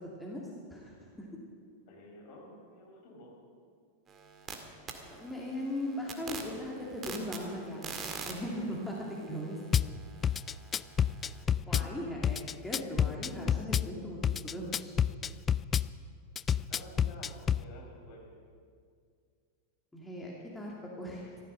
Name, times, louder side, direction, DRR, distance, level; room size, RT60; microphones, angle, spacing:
voice 1, 0.7-1.3 5.1-9.6 11.7-14.9 19.9-21.3, left 1 dB, 5° left, -4 dB, 2.5 m, -39 dB
voice 2, 1.9-3.3 8.4-8.6 11.6-11.8 16.7-18.3, left 1 dB, 45° left, -1 dB, 4.7 m, -51 dB
sound 1, 4.1-4.5 4.9-11.4, right 5 dB, 25° right, 1.9 m, -45 dB
Drum kit / Bass drum, 9.7-9.9 10.2-11.9 12.2-13.9 14.2-15.9 16.4-17.6, left 8 dB, 20° left, 0.3 m, -28 dB
sound 2, 11.7-13.7 14.0-14.1 14.8-15.7, left 3 dB, 75° left, 1.2 m, -51 dB
14.5 x 14.0 x 6.5 m, 2.2 s
figure-of-eight pair, 90°, 0 cm